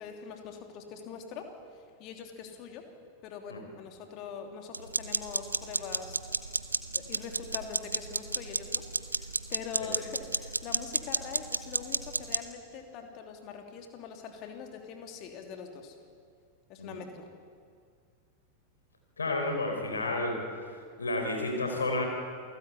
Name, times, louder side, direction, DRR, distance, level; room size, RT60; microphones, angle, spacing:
voice 1, 0.0-1.5 2.0-2.9 3.2-6.2 6.9-15.9 16.7-17.3, left 6 dB, 40° left, 4 dB, 3.1 m, -43 dB
sound 1, 4.7-12.4, right 3 dB, 80° right, 1.0 m, -33 dB
voice 2, 19.2-20.4 21.0-22.1, left 2 dB, 75° left, 3 dB, 4.7 m, -31 dB
28.5 x 19.0 x 8.3 m, 2.2 s
figure-of-eight pair, 90°, 0 cm